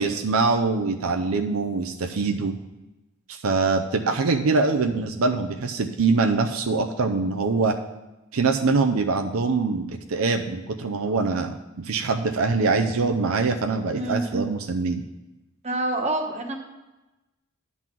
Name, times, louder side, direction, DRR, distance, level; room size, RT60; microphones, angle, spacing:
voice 1, 0.0-2.5 3.3-7.8 8.3-11.6 11.8-15.0, right 4 dB, 80° right, 5 dB, 0.6 m, -23 dB
voice 2, 13.9-14.5 15.6-16.5, right 2 dB, 30° right, 3 dB, 1.2 m, -27 dB
10.5 x 4.1 x 7.4 m, 1.0 s
head